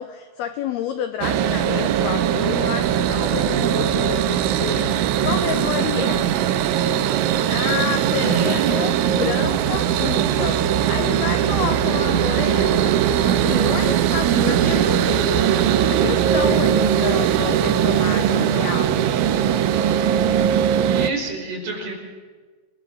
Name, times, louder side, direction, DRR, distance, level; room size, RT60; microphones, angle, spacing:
voice 1, 0.0-6.3 7.5-19.1, left 9 dB, 80° left, 9 dB, 2.3 m, -29 dB
sound 1, 1.2-21.1, right 10 dB, 85° right, 3.5 m, -20 dB
voice 2, 8.1-8.7 20.8-21.9, right 2 dB, 50° right, 0 dB, 6.9 m, -29 dB
Wind instrument woodwind instrument, 10.3-18.7, right 1 dB, 55° left, 7.9 m, -47 dB
28.5 x 21.0 x 7.4 m, 1.4 s
omnidirectional pair, 5.7 m